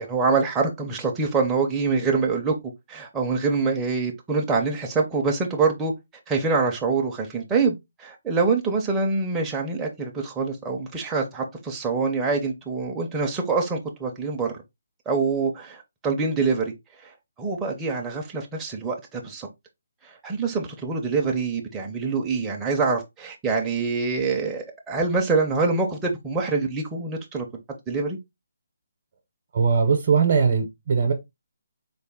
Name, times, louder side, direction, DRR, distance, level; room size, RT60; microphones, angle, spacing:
voice 1, 0.0-2.5 2.9-5.9 6.3-14.5 15.1-16.7 17.0-17.1 17.4-19.5 20.0-27.5 27.9-28.2, right 4 dB, 10° right, 0.5 m, -25 dB
voice 2, 29.5-31.1, right 5 dB, 40° right, 0.7 m, -20 dB
3.9 x 2.1 x 3.4 m
hypercardioid pair, 165°, 0 cm